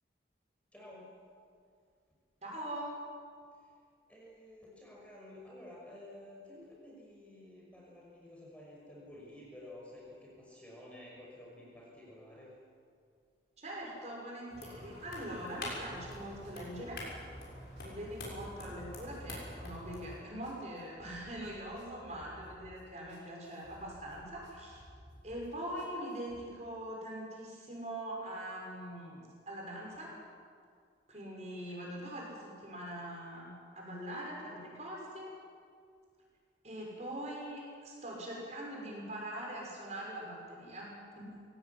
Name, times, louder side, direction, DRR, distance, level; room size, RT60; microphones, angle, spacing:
voice 1, 0.7-1.2 3.6-3.7 4.1-12.5, left 1 dB, 5° left, -4 dB, 5.7 m, -52 dB
voice 2, 2.4-3.0 13.6-17.0 17.8-24.8 25.2-30.2 31.1-35.3 36.6-41.4, right 1 dB, 35° right, -3 dB, 6.5 m, -42 dB
sound 1, 14.5-20.2, left 1 dB, 60° left, 6.6 m, -45 dB
sound 2, 16.1-26.4, equal, 80° right, 6.7 m, -57 dB
21.5 x 18.0 x 9.7 m, 2.2 s
head